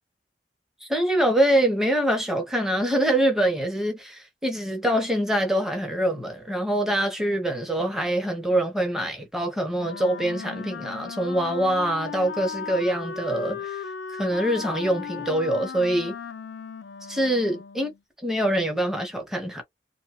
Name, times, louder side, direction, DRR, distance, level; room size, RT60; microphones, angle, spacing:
voice 1, 0.8-13.8 14.1-16.2 17.1-17.9 18.2-19.6, right 1 dB, ahead, 0.7 m, -24 dB
Wind instrument woodwind instrument, 9.7-18.0, left 6 dB, 70° left, 0.4 m, -36 dB
2.7 x 2.2 x 2.9 m
head